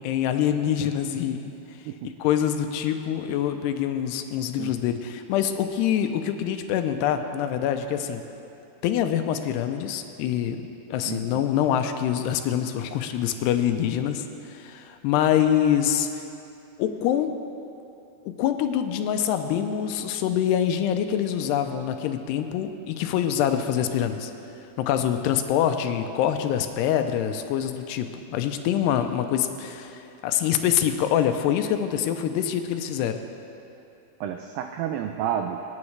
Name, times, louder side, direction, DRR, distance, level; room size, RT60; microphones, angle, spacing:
voice 1, 0.0-1.5 2.2-8.2 8.8-16.1 16.8-17.3 18.3-24.3 24.8-33.2, left 9 dB, 90° left, 7 dB, 2.8 m, -25 dB
voice 2, 11.1-11.4 34.2-35.6, right 9 dB, 85° right, 5 dB, 2.0 m, -30 dB
25.5 x 9.6 x 3.3 m, 2.8 s
omnidirectional pair, 4.7 m